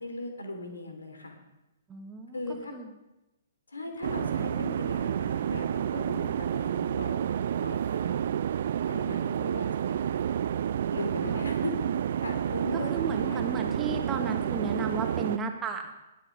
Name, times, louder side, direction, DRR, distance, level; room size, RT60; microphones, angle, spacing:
voice 1, 0.0-1.4 2.3-2.7 3.7-7.2 7.6-8.3 8.9-10.2 10.9-11.7 12.2-13.9 14.4-14.8, left 1 dB, 75° left, 5 dB, 3.4 m, -38 dB
voice 2, 1.9-2.4 2.7-2.9 11.3-11.4 12.9-15.9, right 4 dB, 15° right, 4 dB, 1.6 m, -34 dB
sound 1, 4.0-15.4, right 9 dB, 55° right, 0.5 m, -30 dB
20.5 x 8.6 x 5.3 m, 0.98 s
figure-of-eight pair, 120°, 0 cm